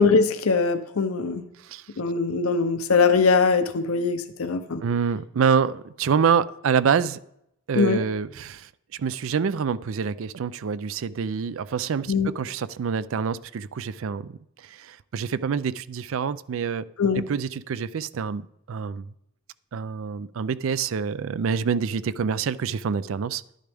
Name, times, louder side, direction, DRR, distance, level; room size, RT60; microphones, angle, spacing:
voice 1, 0.0-1.4 2.0-4.8 7.8-8.0 12.1-12.3 17.0-17.2, left 4 dB, 80° left, 9 dB, 0.7 m, -21 dB
voice 2, 4.8-7.2 7.7-8.7 9.0-14.4 14.6-16.9 17.2-19.1 19.7-23.4, right 6 dB, 65° right, 17 dB, 0.4 m, -26 dB
11.5 x 10.0 x 3.5 m, 0.79 s
head